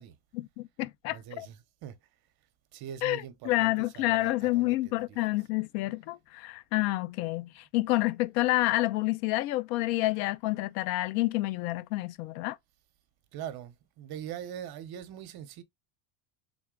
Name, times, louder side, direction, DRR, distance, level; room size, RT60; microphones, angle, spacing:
voice 1, 0.3-1.5 3.0-12.6, left 18 dB, 80° left, 0.6 m, -29 dB
voice 2, 1.1-2.0 2.7-5.2 13.3-15.6, right 10 dB, 50° right, 0.8 m, -42 dB
3.7 x 2.2 x 3.7 m
supercardioid pair, 120°, 50 cm